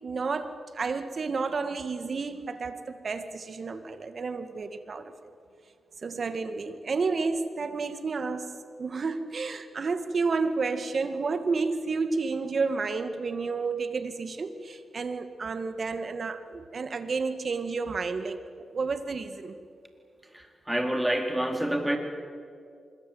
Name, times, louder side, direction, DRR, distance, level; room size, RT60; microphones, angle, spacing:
voice 1, 0.0-5.1 6.0-19.5, right 4 dB, 55° right, 10 dB, 2.1 m, -31 dB
voice 2, 20.3-22.0, right 1 dB, 10° right, 4 dB, 4.4 m, -28 dB
25.5 x 22.0 x 8.8 m, 2.4 s
cardioid pair, 55°, 0 cm